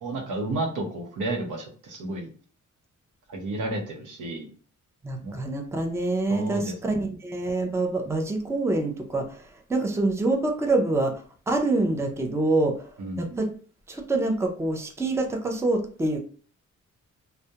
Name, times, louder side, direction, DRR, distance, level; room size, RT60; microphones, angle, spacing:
voice 1, 0.0-2.3 3.3-4.5 5.2-5.3 6.3-6.7 13.0-13.4, right 2 dB, 85° right, 3 dB, 0.7 m, -31 dB
voice 2, 5.0-11.1 11.5-12.9 13.2-13.5 13.9-16.2, right 2 dB, 10° right, 3 dB, 0.4 m, -26 dB
2.3 x 2.1 x 2.7 m, 0.41 s
cardioid pair, 110°, 30 cm